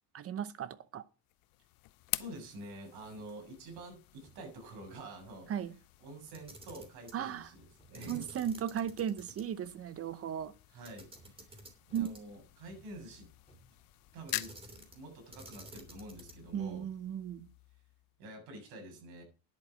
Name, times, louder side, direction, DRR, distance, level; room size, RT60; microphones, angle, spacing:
voice 1, 0.1-1.0 5.5-5.8 7.1-7.5 8.1-10.5 11.9-12.3 16.5-17.5, right 9 dB, 40° right, 0.9 m, -36 dB
sound 1, 1.3-18.2, left 19 dB, 65° left, 0.7 m, -48 dB
voice 2, 2.1-5.5 6.0-8.3 10.7-11.6 11.9-13.3 14.1-14.5 14.9-16.9 18.2-19.2, right 1 dB, 85° right, 7.2 m, -48 dB
sound 2, 3.7-3.9 4.2-4.5 4.8-5.2 7.6-9.0 9.4-9.5 11.1-14.8 15.1-15.2, right 1 dB, 15° left, 4.3 m, -64 dB
Camera, 6.3-7.2 7.9-9.4 9.8-9.9 10.8-12.4 14.3-15.0 15.3-16.5, right 1 dB, 15° right, 2.9 m, -52 dB
11.0 x 8.2 x 6.1 m
cardioid pair, 145°, 38 cm